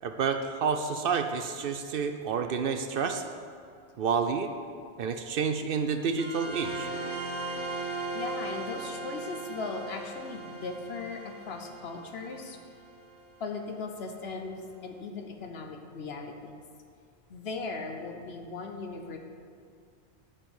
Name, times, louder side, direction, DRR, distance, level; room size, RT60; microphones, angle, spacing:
voice 1, 0.0-3.2 4.0-4.5 5.0-6.9, right 6 dB, 65° right, 7 dB, 0.7 m, -29 dB
sound 1, 6.2-13.3, right 2 dB, 85° right, 1.8 m, -38 dB
voice 2, 8.1-12.6 13.4-16.5 17.3-19.2, left 4 dB, 65° left, 4 dB, 1.1 m, -38 dB
8.6 x 5.1 x 7.2 m, 2.3 s
omnidirectional pair, 1.1 m